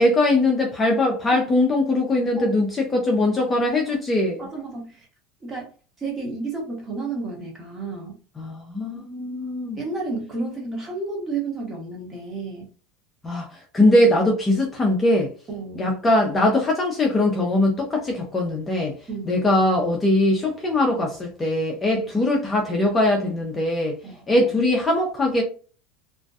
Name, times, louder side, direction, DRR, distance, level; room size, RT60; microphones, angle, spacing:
voice 1, 0.0-4.5 8.4-9.8 13.2-15.3 15.8-18.9 19.3-24.0 24.3-25.4, left 1 dB, 15° left, 0.5 m, -21 dB
voice 2, 4.4-5.1 5.4-5.7 6.0-8.2 9.8-12.7 15.5-15.9 19.1-19.4 21.9-22.0 24.0-24.5, right 3 dB, 20° right, 1.0 m, -32 dB
2.5 x 2.1 x 2.3 m
supercardioid pair, 140°, 0 cm